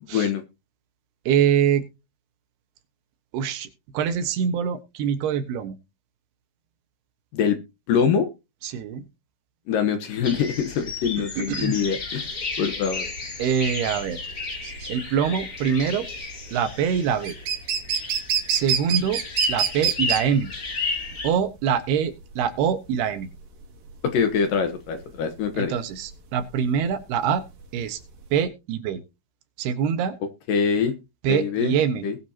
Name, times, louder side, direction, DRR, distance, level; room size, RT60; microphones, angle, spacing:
voice 1, 0.0-0.4 7.3-7.6 7.9-8.3 9.7-12.2 12.6-13.1 24.0-25.7 30.5-30.9 31.3-31.7 32.0-32.2, left 7 dB, 70° left, 8 dB, 2.5 m, -24 dB
voice 2, 1.3-1.9 3.3-3.7 3.9-5.8 8.6-9.0 11.2-11.8 13.4-14.2 14.9-16.1 16.5-17.4 18.5-19.2 19.5-20.5 21.2-23.3 25.5-27.4 27.7-28.0 28.3-29.0 29.6-30.2 31.2-32.1, right 8 dB, 85° right, 9 dB, 3.3 m, -24 dB
sound 1, 10.2-21.3, left 3 dB, 30° left, 1.5 m, -33 dB
sound 2, 12.1-28.4, right 8 dB, 65° right, 3.7 m, -29 dB
20.5 x 7.5 x 2.8 m, 0.27 s
omnidirectional pair, 4.6 m